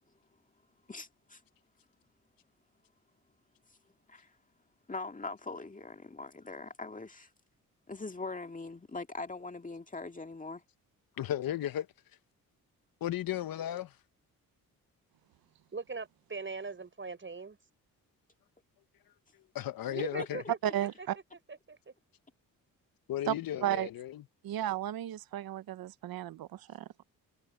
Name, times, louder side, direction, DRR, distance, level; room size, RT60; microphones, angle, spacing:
voice 1, 0.9-1.4 4.1-4.3 4.9-7.3 7.9-10.6, left 3 dB, 20° left, 2.0 m, -42 dB
voice 2, 11.2-11.9 13.0-14.0 19.5-20.4 23.1-24.2, left 11 dB, 70° left, 1.1 m, -35 dB
voice 3, 15.7-17.6 19.9-21.1 21.3-21.9, right 4 dB, 35° right, 6.6 m, -41 dB
voice 4, 20.6-21.2 23.3-23.4 23.6-23.9 24.4-27.0, right 11 dB, 75° right, 1.0 m, -34 dB
cardioid pair, 65°, 36 cm